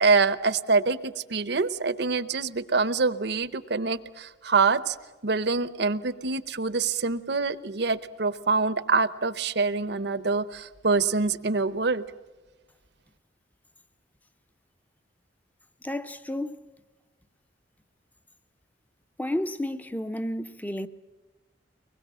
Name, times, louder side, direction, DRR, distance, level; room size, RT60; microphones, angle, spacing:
voice 1, 0.0-4.9 5.2-12.0, right 4 dB, 60° right, 0.8 m, -25 dB
voice 2, 15.8-16.7 19.2-20.9, left 1 dB, 10° left, 0.7 m, -31 dB
23.5 x 20.5 x 7.6 m
head